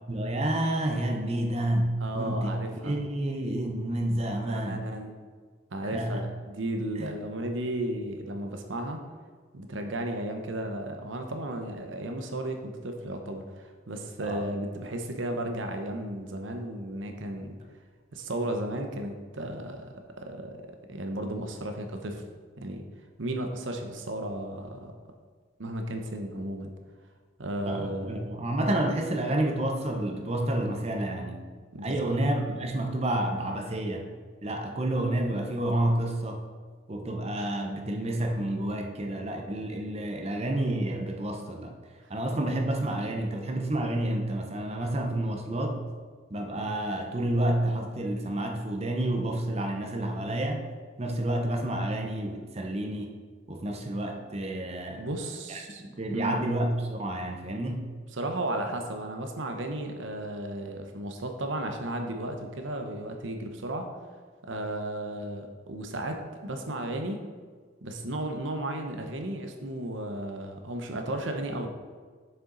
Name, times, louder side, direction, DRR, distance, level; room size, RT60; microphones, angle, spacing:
voice 1, 0.1-2.5 2.8-4.8 5.9-6.2 7.0-7.1 14.2-14.4 27.6-31.4 31.8-34.1 34.4-36.4 36.9-41.7 42.1-45.8 46.3-50.7 51.0-53.1 53.5-55.0 55.5-57.8, right 1 dB, 30° right, 3 dB, 0.8 m, -29 dB
voice 2, 2.0-3.0 4.5-5.1 5.7-9.0 9.5-17.6 18.1-22.3 22.6-22.9 23.2-24.9 25.6-26.7 27.4-28.4 31.7-32.2 55.0-55.8 56.1-56.4 58.1-63.9 64.4-67.2 67.8-71.7, right 1 dB, 80° right, 5 dB, 0.8 m, -34 dB
6.9 x 6.7 x 3.9 m, 1.5 s
head